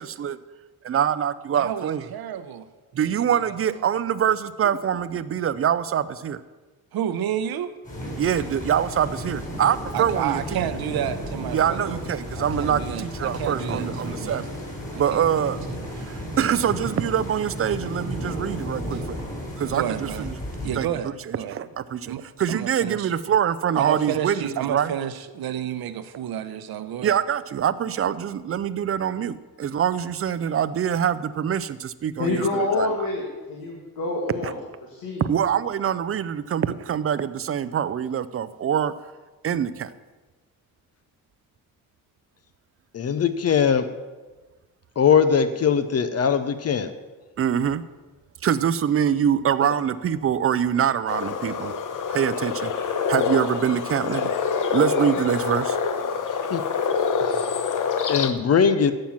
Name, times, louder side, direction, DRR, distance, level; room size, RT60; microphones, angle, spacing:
voice 1, 0.0-0.3 0.8-2.0 2.9-6.4 8.2-10.6 11.5-14.5 14.9-15.6 16.0-19.3 19.6-20.4 20.8-20.9 21.3-24.9 27.0-33.1 34.4-34.5 35.2-38.9 39.4-39.9 47.4-47.8 48.4-51.7 52.1-54.3 54.7-55.8, right 9 dB, 40° right, 15 dB, 0.5 m, -24 dB
voice 2, 1.5-2.7 2.9-3.6 6.9-7.8 9.9-12.0 12.4-14.4 14.9-15.5 18.9-19.0 19.7-20.3 20.6-21.6 22.0-22.2 22.5-23.1 23.8-27.2, right 10 dB, 85° right, 11 dB, 0.9 m, -31 dB
sound 1, 7.8-20.8, equal, 20° left, 4.4 m, -33 dB
voice 3, 32.2-34.6 34.8-35.2, left 2 dB, 75° left, -1 dB, 2.1 m, -27 dB
voice 4, 42.9-43.9 45.0-46.9 49.6-49.8 56.5-56.6 57.3-57.4 58.1-58.9, left 7 dB, 45° left, 11 dB, 0.6 m, -20 dB
sound 2, 51.1-58.3, left 6 dB, 60° left, 1.0 m, -26 dB
11.5 x 7.7 x 7.3 m, 1.3 s
wide cardioid pair, 155°, 36 cm